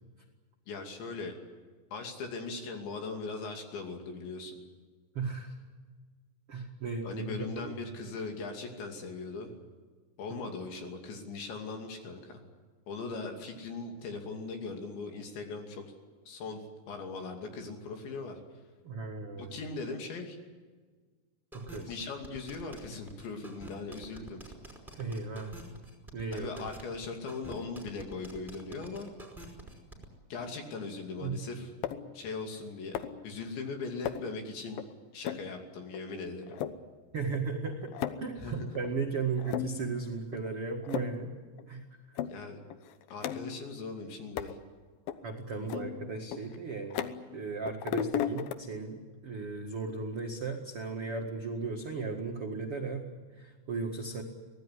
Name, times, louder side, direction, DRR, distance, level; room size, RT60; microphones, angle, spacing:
voice 1, 0.7-1.3 1.9-4.5 7.0-9.6 10.2-12.4 12.9-15.8 16.3-18.4 19.4-20.4 21.9-24.4 26.3-29.1 30.3-31.7 32.1-34.8 35.1-36.6 38.4-38.7 42.3-42.6 43.1-44.6 45.5-45.8, left 3 dB, 65° left, 3 dB, 4.8 m, -39 dB
voice 2, 5.1-5.5 6.5-7.7 10.3-10.5 18.8-19.6 21.5-22.0 24.9-25.6 26.1-26.5 31.2-31.4 37.1-37.9 38.2-41.3 41.7-42.2 45.2-47.0 47.3-54.2, right 4 dB, 70° right, 1 dB, 1.3 m, -36 dB
sound 1, 21.5-30.1, right 1 dB, ahead, 4.3 m, -48 dB
sound 2, 31.8-32.2 32.9-33.3 34.1-34.4 34.8-34.9 35.2-35.5 35.9-36.0 36.4-36.8 37.3-37.4 37.7-38.3 38.8-38.9 39.4-39.9 40.3-40.5 40.8-41.2 41.6-41.7 42.2-42.4 42.7-43.7 44.4-44.6 45.1-45.2 45.7-47.4 47.7-48.5, left 9 dB, 85° left, 2.1 m, -35 dB
24.0 x 18.0 x 9.8 m, 1.4 s
omnidirectional pair, 5.8 m